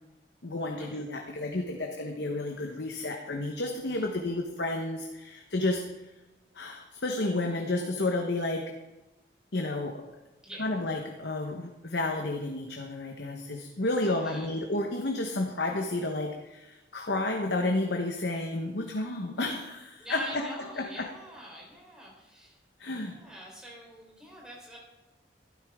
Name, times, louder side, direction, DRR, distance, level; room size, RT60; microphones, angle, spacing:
voice 1, 0.4-5.8 6.5-8.7 9.5-10.0 10.6-20.5 20.8-21.1 22.8-23.2, left 2 dB, 75° left, 3 dB, 1.1 m, -31 dB
voice 2, 14.0-14.7 20.0-22.6 23.0-24.8, equal, 5° right, -3 dB, 3.7 m, -44 dB
12.5 x 12.0 x 3.6 m, 1.1 s
head